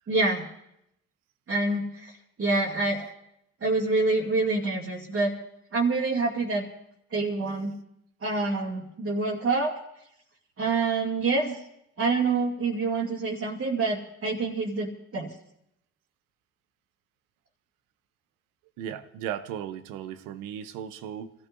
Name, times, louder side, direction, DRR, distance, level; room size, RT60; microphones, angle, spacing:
voice 1, 0.1-0.5 1.5-2.1 2.4-3.0 3.6-5.3 5.7-6.7 7.1-7.7 8.2-9.8 10.6-11.6 12.0-15.3, right 3 dB, 45° right, -5 dB, 2.4 m, -26 dB
voice 2, 13.0-13.4 18.8-21.3, right 9 dB, 90° right, 12 dB, 0.8 m, -37 dB
29.0 x 14.0 x 2.6 m, 0.78 s
hypercardioid pair, 50°, 32 cm